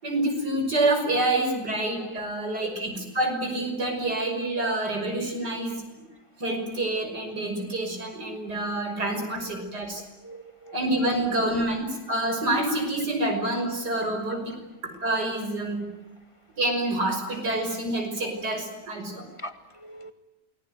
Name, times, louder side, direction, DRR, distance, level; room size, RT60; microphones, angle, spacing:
voice 1, 0.0-5.8 6.4-10.0 10.7-15.9 16.6-19.3, right 1 dB, 80° right, 4 dB, 6.6 m, -27 dB
voice 2, 2.0-2.5 8.6-8.7 9.1-9.2 9.6-9.7 10.2-11.1 19.4-20.1, right 1 dB, 20° left, 9 dB, 1.8 m, -43 dB
28.5 x 21.5 x 9.4 m, 0.97 s
omnidirectional pair, 1.7 m